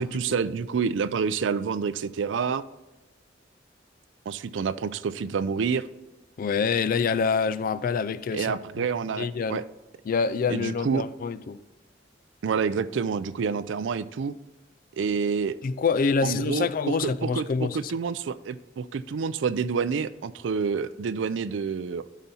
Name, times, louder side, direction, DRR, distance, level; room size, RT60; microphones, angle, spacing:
voice 1, 0.0-2.6 4.3-5.9 8.3-9.6 10.5-11.0 12.4-14.3 14.9-15.5 16.2-22.0, right 5 dB, 75° right, 0.4 m, -28 dB
voice 2, 6.4-8.9 9.2-9.6 10.1-11.6 15.6-17.8, left 5 dB, 50° left, 0.3 m, -26 dB
12.0 x 4.2 x 4.1 m
head